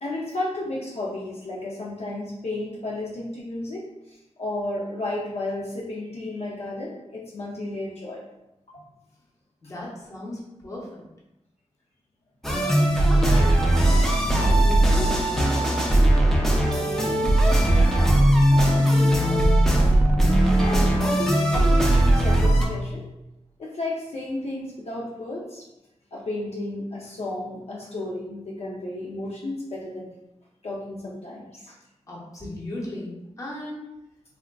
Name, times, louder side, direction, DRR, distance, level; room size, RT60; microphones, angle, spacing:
voice 1, 0.0-8.2 8.7-8.8 20.5-23.0 23.6-25.6 26.1-30.1 30.6-31.7, left 2 dB, 60° left, -4 dB, 0.5 m, -33 dB
voice 2, 9.6-11.0 12.5-19.5 32.1-33.8, left 1 dB, 30° left, -5 dB, 0.8 m, -37 dB
sound 1, 12.4-22.7, right 1 dB, 5° left, 0.4 m, -19 dB
3.4 x 2.3 x 2.2 m, 0.91 s
wide cardioid pair, 125°, 12 cm